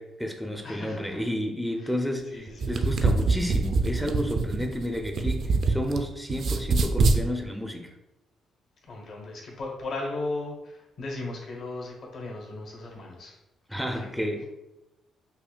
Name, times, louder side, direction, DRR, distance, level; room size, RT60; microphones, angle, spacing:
voice 1, 0.0-7.9 13.7-14.5, equal, ahead, 3 dB, 0.4 m, -31 dB
voice 2, 0.6-1.2 1.8-1.9 2.3-2.7 8.8-13.4 13.9-14.1, left 2 dB, 65° left, -1 dB, 1.1 m, -36 dB
sound 1, 2.5-6.0 6.3-7.2, right 3 dB, 60° right, 0.4 m, -24 dB
5.5 x 2.3 x 2.2 m, 0.93 s
cardioid pair, 90°, 0 cm